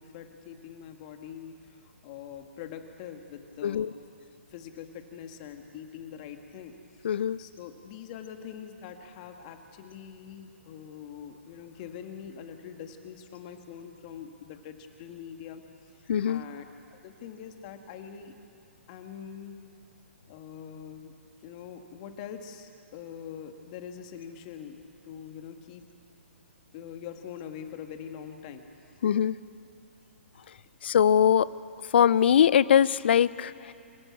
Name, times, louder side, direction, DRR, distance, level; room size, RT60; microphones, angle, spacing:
voice 1, 0.0-4.0 4.5-6.8 7.4-15.6 16.2-16.6 16.9-18.3 18.9-19.6 20.3-21.1 21.4-24.8 25.0-25.8 26.7-28.6, left 8 dB, 35° left, 6 dB, 1.8 m, -43 dB
voice 2, 7.0-7.4 16.1-16.4 29.0-29.4 30.8-31.5 31.9-33.7, left 9 dB, 55° left, 19 dB, 0.5 m, -22 dB
26.5 x 14.5 x 8.5 m, 2.7 s
figure-of-eight pair, 125°, 7 cm